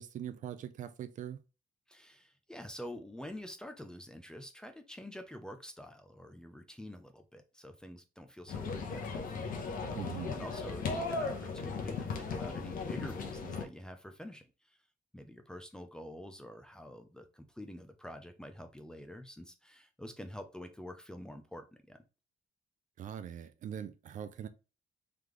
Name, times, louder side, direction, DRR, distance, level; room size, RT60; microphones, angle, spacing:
voice 1, 0.0-1.4 10.0-10.4 23.0-24.5, right 9 dB, 55° right, 0.5 m, -42 dB
voice 2, 1.9-9.3 10.1-14.8 15.1-22.0, left 1 dB, 5° left, 0.5 m, -47 dB
sound 1, 8.5-13.7, left 4 dB, 65° left, 1.0 m, -37 dB
3.7 x 3.4 x 3.0 m
cardioid pair, 160°, 15 cm